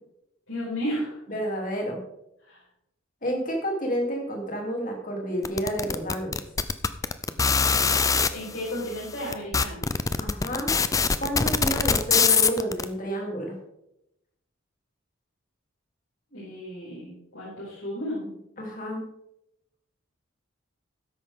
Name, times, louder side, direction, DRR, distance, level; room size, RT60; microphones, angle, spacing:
voice 1, 0.5-1.2 2.5-2.6 8.3-9.9 16.3-18.4, equal, 70° left, -8 dB, 5.1 m, -33 dB
voice 2, 1.3-2.0 3.2-6.4 10.2-10.8 11.2-13.6 18.6-19.0, equal, 40° left, 0 dB, 3.1 m, -30 dB
sound 1, 5.5-8.3 9.0-9.1 9.3-12.8, left 5 dB, 15° left, 0.4 m, -22 dB
13.0 x 10.5 x 3.7 m, 0.82 s
head